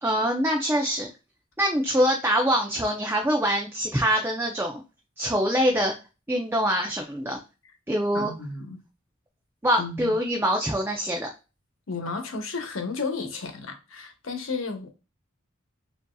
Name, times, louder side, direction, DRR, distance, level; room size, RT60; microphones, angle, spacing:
voice 1, 0.0-1.1 1.6-4.8 5.2-5.9 6.3-7.4 7.9-8.3 9.6-11.3, equal, 10° right, 0.6 m, -24 dB
voice 2, 8.1-8.8 9.8-10.1 11.9-14.9, left 4 dB, 75° left, 1.0 m, -33 dB
6.8 x 2.7 x 2.3 m
head